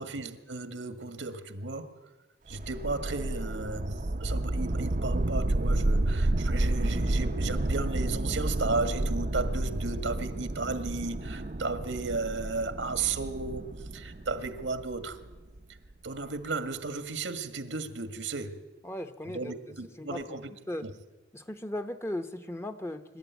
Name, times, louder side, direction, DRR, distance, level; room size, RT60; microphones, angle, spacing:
voice 1, 0.0-1.9 2.5-13.6 13.9-15.2 16.0-18.6 19.3-20.5 20.8-20.9, right 3 dB, 90° right, 1.8 m, -34 dB
sound 1, 2.5-15.6, right 1 dB, 45° right, 0.7 m, -30 dB
voice 2, 18.8-19.6 20.0-20.4 20.7-20.9 21.3-23.2, left 1 dB, 15° left, 0.9 m, -37 dB
24.5 x 12.5 x 9.5 m
head